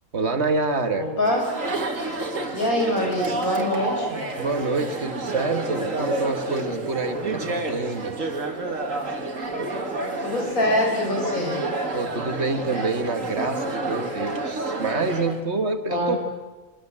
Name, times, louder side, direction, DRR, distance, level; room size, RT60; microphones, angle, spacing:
voice 1, 0.1-1.1 4.4-8.3 11.9-16.3, right 3 dB, 50° right, 7 dB, 1.8 m, -27 dB
voice 2, 1.0-1.5 2.5-4.3 10.2-11.7 15.9-16.2, left 1 dB, 85° left, 1 dB, 6.2 m, -24 dB
Chatter, 1.3-15.4, right 2 dB, 70° right, 2.7 m, -29 dB
24.0 x 22.0 x 7.5 m, 1.2 s
omnidirectional pair, 1.4 m